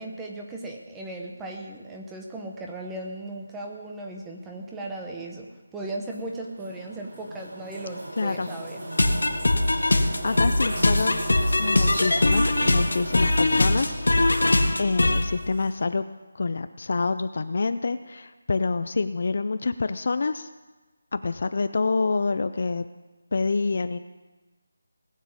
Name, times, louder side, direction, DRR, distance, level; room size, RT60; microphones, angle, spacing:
voice 1, 0.0-8.8, right 2 dB, 5° right, 0 dB, 0.7 m, -37 dB
sound 1, 6.1-15.7, right 1 dB, 50° right, 5.4 m, -36 dB
voice 2, 8.2-8.5 9.9-11.2 11.6-14.5 14.8-16.1 16.3-20.5 21.1-22.8 23.3-24.0, left 3 dB, 35° left, 11 dB, 0.4 m, -27 dB
sound 2, 8.9-15.2, left 2 dB, 85° left, 1.6 m, -21 dB
18.5 x 7.4 x 7.2 m, 1.2 s
figure-of-eight pair, 180°, 0 cm